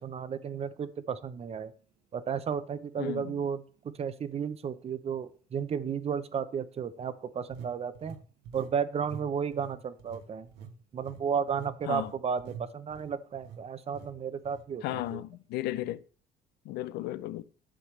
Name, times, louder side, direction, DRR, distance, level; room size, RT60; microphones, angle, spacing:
voice 1, 0.0-1.7 2.1-3.6 4.0-8.2 8.5-10.5 10.9-15.2, right 7 dB, 35° right, 0.7 m, -33 dB
voice 2, 3.0-3.4 11.9-12.1 14.8-16.0 16.6-17.4, left 15 dB, 80° left, 0.5 m, -35 dB
sound 1, 3.1-3.2 3.8-3.9 7.5-8.8 9.0-9.3 9.5-13.6 13.9-14.1 14.4-14.6 15.0-15.2, right 6 dB, 80° right, 1.3 m, -47 dB
11.0 x 6.5 x 3.2 m
cardioid pair, 110°, 17 cm